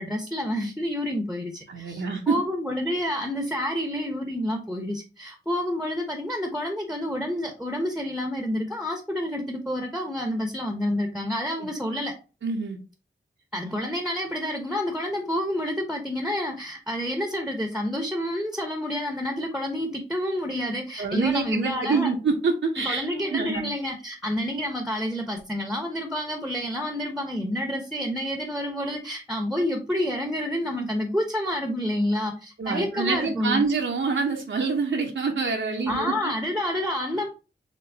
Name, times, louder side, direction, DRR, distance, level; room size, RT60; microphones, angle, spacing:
voice 1, 0.0-12.1 13.5-22.1 22.8-33.6 35.7-37.3, left 1 dB, 5° right, 0.8 m, -29 dB
voice 2, 1.7-2.4 11.6-11.7 12.4-12.8 21.0-23.7 32.6-36.3, right 4 dB, 75° right, 0.7 m, -26 dB
4.4 x 3.0 x 2.8 m
cardioid pair, 45°, 20 cm